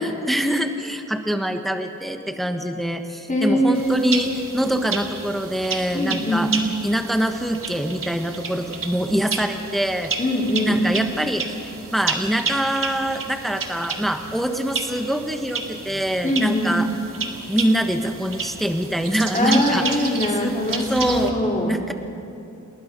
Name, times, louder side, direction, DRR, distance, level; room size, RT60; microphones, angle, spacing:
voice 1, 0.0-6.5 6.8-10.1 10.6-16.9 17.5-20.5 20.9-21.3 21.7-21.9, equal, ahead, 6 dB, 1.4 m, -24 dB
voice 2, 3.3-4.0 5.9-6.5 10.2-10.8 16.2-16.8 19.3-21.8, left 1 dB, 25° left, -2 dB, 4.1 m, -22 dB
sound 1, 3.7-21.3, right 4 dB, 85° right, 2.0 m, -31 dB
28.0 x 20.0 x 5.5 m, 2.9 s
wide cardioid pair, 70°, 32 cm